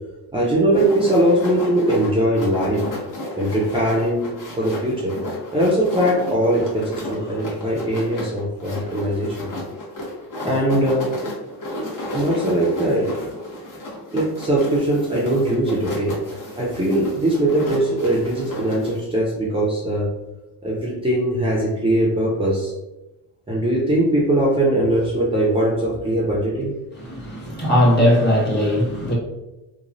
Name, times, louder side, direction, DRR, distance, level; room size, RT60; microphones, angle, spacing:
voice 1, 0.3-2.8 3.4-5.2 5.5-9.5 10.4-11.1 12.1-13.3 14.1-16.2 16.6-20.1 20.6-22.7 23.5-26.7, right 1 dB, 15° right, -6 dB, 0.6 m, -21 dB
sound 1, 0.7-19.0, left 1 dB, 50° left, 1.1 m, -33 dB
voice 2, 27.0-29.1, equal, 25° left, -3 dB, 1.2 m, -18 dB
3.0 x 2.2 x 2.6 m, 1.0 s
cardioid pair, 80°, 40 cm